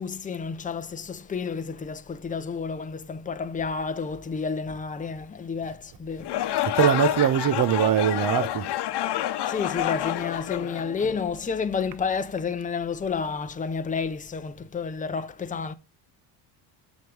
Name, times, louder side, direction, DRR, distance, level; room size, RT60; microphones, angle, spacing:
voice 1, 0.0-6.3 9.5-15.7, left 5 dB, 15° left, 0.7 m, -30 dB
sound 1, 6.2-11.4, left 13 dB, 55° left, 1.1 m, -28 dB
voice 2, 6.7-8.7, right 9 dB, 45° right, 1.0 m, -22 dB
7.5 x 7.5 x 3.4 m
supercardioid pair, 90°, 47 cm